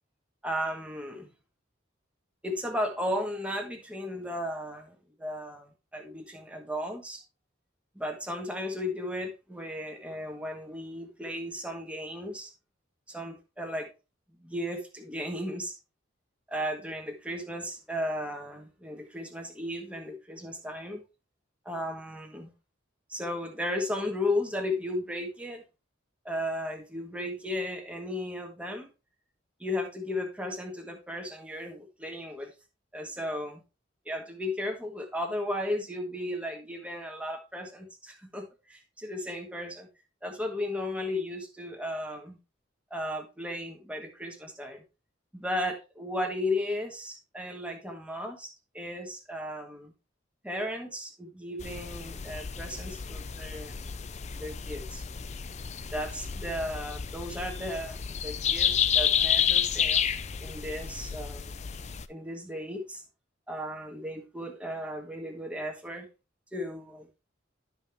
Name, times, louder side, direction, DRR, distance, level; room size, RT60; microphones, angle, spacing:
voice 1, 0.4-1.3 2.4-7.2 7.9-12.5 13.1-13.9 14.4-15.7 16.5-21.0 21.6-22.5 23.1-25.6 26.2-28.9 29.6-32.5 32.9-33.6 34.0-39.9 40.2-42.4 42.9-44.8 45.3-49.9 50.4-53.8 54.4-55.0 55.9-60.0 60.4-61.5 62.1-63.0 63.5-66.1 66.5-67.1, left 1 dB, 5° right, 1.7 m, -35 dB
sound 1, 51.6-62.0, left 8 dB, 35° left, 0.5 m, -30 dB
12.5 x 5.4 x 3.1 m
head